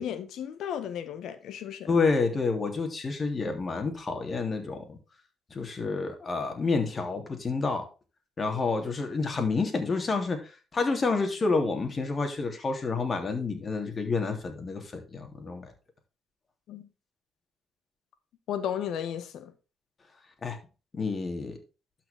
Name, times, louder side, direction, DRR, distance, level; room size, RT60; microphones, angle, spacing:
voice 1, 0.0-2.0 16.7-16.9 18.5-19.5, left 9 dB, 75° left, 1.6 m, -34 dB
voice 2, 1.9-5.0 5.5-7.8 8.4-15.7 20.4-20.6 20.9-21.6, left 4 dB, 35° left, 3.2 m, -29 dB
12.5 x 5.9 x 3.7 m
cardioid pair, 90°, 0 cm